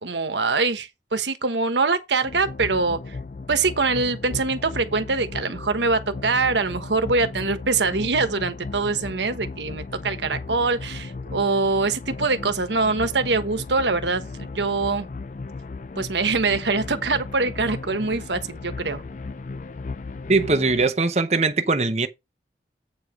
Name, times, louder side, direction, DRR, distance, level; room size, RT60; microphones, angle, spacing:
voice 1, 0.0-3.2 3.5-15.1 16.0-19.0, right 3 dB, 90° right, 1.3 m, -24 dB
sound 1, 2.2-20.9, left 3 dB, 45° left, 0.4 m, -36 dB
voice 2, 20.3-22.1, right 3 dB, 40° right, 0.8 m, -21 dB
8.4 x 4.8 x 5.1 m
head